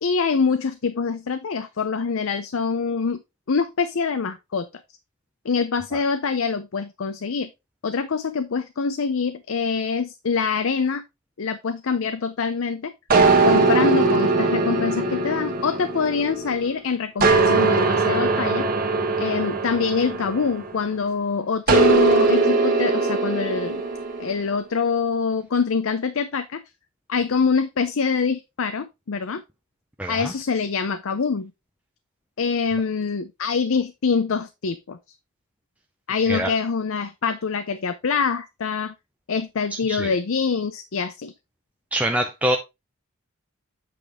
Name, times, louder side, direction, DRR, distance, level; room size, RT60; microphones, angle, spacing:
voice 1, 0.0-3.2 3.5-4.7 5.4-7.5 7.8-11.0 11.4-12.9 13.4-18.7 19.2-23.8 24.2-26.6 27.1-29.4 30.1-31.5 32.4-35.0 36.1-38.9 39.3-41.3, left 5 dB, 65° left, 0.5 m, -25 dB
sound 1, 13.1-16.7 17.2-20.9 21.7-24.4, right 3 dB, 40° right, 1.4 m, -20 dB
voice 2, 30.0-30.3 36.3-36.5 39.9-40.1 41.9-42.6, right 1 dB, 5° right, 0.6 m, -24 dB
8.5 x 5.2 x 3.4 m
head